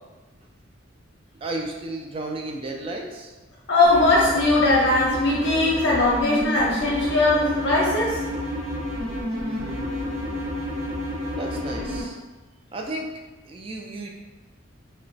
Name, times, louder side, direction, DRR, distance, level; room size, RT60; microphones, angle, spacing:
voice 1, 1.3-3.3 9.4-10.5 11.3-12.2 12.7-13.1 13.5-14.1, right 2 dB, 25° right, 1 dB, 0.3 m, -34 dB
voice 2, 3.7-8.2, left 2 dB, 60° left, -5 dB, 0.6 m, -20 dB
sound 1, 3.8-12.0, left 1 dB, 80° right, 0.9 m, -30 dB
3.0 x 2.1 x 3.9 m, 1.2 s
head